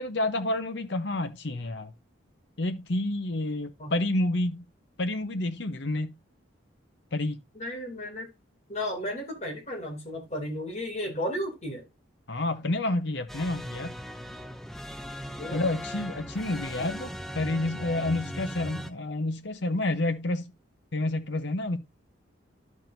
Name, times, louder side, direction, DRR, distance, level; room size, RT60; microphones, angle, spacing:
voice 1, 0.0-1.9 2.6-4.6 5.0-6.1 7.1-7.4 12.3-13.9 15.5-20.5 20.9-21.8, left 2 dB, 60° left, 0.9 m, -29 dB
voice 2, 7.6-8.3 8.7-11.9 15.4-15.6 16.8-16.9, left 1 dB, 35° left, 2.6 m, -34 dB
sound 1, 13.3-18.9, equal, ahead, 0.4 m, -38 dB
11.0 x 6.1 x 2.6 m
head